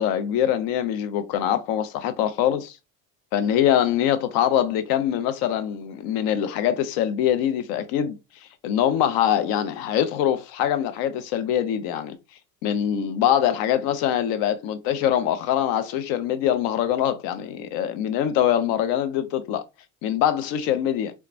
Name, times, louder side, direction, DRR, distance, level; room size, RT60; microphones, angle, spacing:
voice 1, 0.0-2.8 3.3-8.2 8.6-12.2 12.6-19.6 20.0-21.1, left 10 dB, 65° left, 0.6 m, -23 dB
2.9 x 2.3 x 2.4 m
hypercardioid pair, 80°, 39 cm